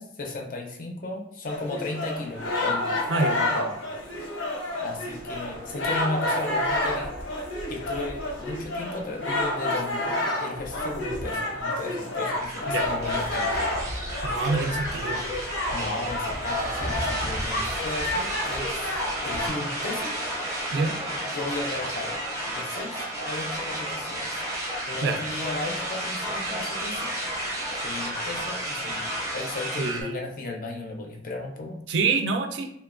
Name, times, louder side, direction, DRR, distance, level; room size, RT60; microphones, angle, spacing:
voice 1, 0.0-2.9 3.2-3.8 4.8-7.1 7.7-13.7 15.7-18.9 19.2-20.2 21.3-22.2 22.5-24.4 24.9-27.3 27.8-31.8, left 2 dB, 45° left, 1 dB, 0.4 m, -35 dB
sound 1, 1.5-19.5, left 1 dB, 80° left, 0.7 m, -29 dB
sound 2, 12.3-30.0, right 1 dB, 20° right, 0.5 m, -32 dB
voice 2, 14.2-15.2 20.7-21.0 25.0-25.2 29.8-30.2 31.9-32.7, right 4 dB, 70° right, 5 dB, 0.3 m, -26 dB
3.0 x 2.2 x 2.4 m, 0.75 s
head